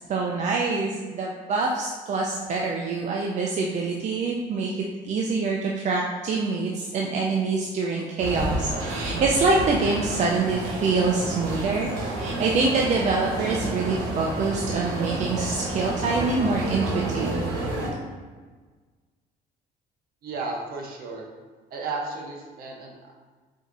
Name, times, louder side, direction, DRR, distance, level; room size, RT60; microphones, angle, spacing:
voice 1, 0.1-4.7 5.0-17.4, right 3 dB, 45° right, -1 dB, 0.5 m, -25 dB
sound 1, 8.2-17.9, right 1 dB, 85° right, 1.2 m, -30 dB
voice 2, 20.2-21.3 21.7-23.1, right 3 dB, 60° right, 0 dB, 1.0 m, -33 dB
5.0 x 2.7 x 3.8 m, 1.4 s
cardioid pair, 110°, 17 cm